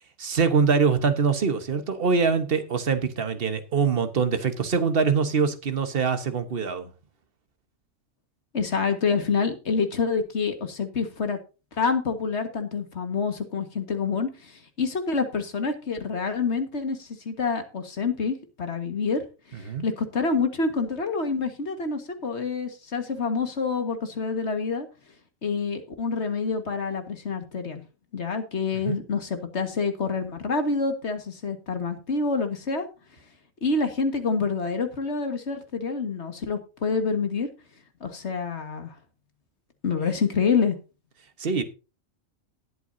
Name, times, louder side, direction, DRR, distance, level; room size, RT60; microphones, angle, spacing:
voice 1, 0.2-6.9 19.5-19.8 28.7-29.0 41.4-41.6, right 5 dB, 45° right, 1.4 m, -24 dB
voice 2, 8.5-11.4 11.7-19.2 19.5-24.9 25.4-27.8 28.1-32.9 33.6-37.5 38.0-38.9 39.8-40.8, left 4 dB, 55° left, 1.9 m, -27 dB
19.5 x 8.2 x 2.7 m
omnidirectional pair, 1.4 m